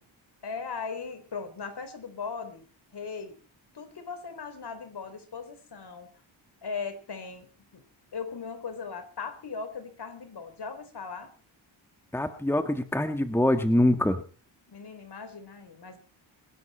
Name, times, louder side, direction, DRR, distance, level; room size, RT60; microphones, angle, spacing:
voice 1, 0.4-2.6 2.9-3.4 3.7-6.1 6.6-7.5 7.7-7.8 8.1-11.3 14.7-16.0, left 5 dB, 55° left, 8 dB, 4.5 m, -38 dB
voice 2, 12.1-14.2, left 1 dB, 5° left, 8 dB, 1.6 m, -24 dB
23.0 x 11.0 x 4.4 m, 0.38 s
cardioid pair, 65°, 48 cm